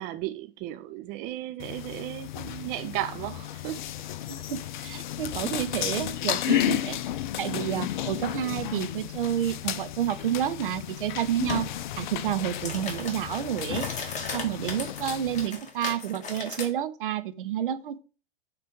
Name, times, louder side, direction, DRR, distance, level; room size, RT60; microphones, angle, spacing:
voice 1, 0.0-3.8 6.4-6.7, right 14 dB, 30° right, 0.5 m, -35 dB
sound 1, 1.6-15.5, left 12 dB, 55° left, 0.6 m, -33 dB
voice 2, 4.3-7.0 7.4-11.7 12.0-13.9 14.3-18.0, right 10 dB, 60° right, 0.8 m, -30 dB
sound 2, 11.5-11.7 12.1-16.7, left 4 dB, 25° left, 1.4 m, -37 dB
7.5 x 3.3 x 5.2 m
figure-of-eight pair, 95°, 30 cm